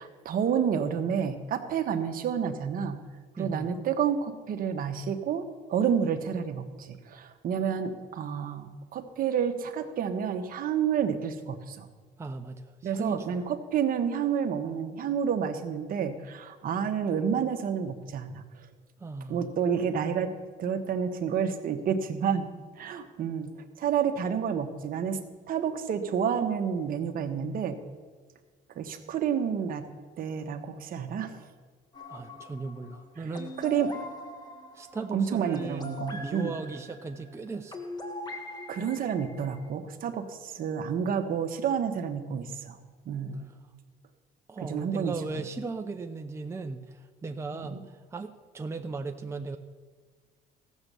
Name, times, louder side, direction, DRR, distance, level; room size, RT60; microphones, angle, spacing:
voice 1, 0.0-3.0 3.4-11.9 12.8-18.4 19.3-20.3 20.6-22.5 22.8-23.5 23.8-25.2 25.5-27.8 28.8-29.9 30.2-31.4 33.2-33.3 33.6-33.9 35.1-36.6 38.7-42.8 43.1-43.5 44.6-45.5 47.5-47.8, right 7 dB, 55° right, 7 dB, 1.2 m, -29 dB
voice 2, 3.4-3.7 12.2-13.4 19.0-19.5 32.1-33.6 34.7-37.8 44.5-49.6, right 3 dB, 15° right, 5 dB, 0.6 m, -37 dB
sound 1, 31.9-39.7, left 1 dB, 25° left, 1.5 m, -42 dB
15.0 x 7.3 x 6.8 m, 1.5 s
cardioid pair, 110°, 17 cm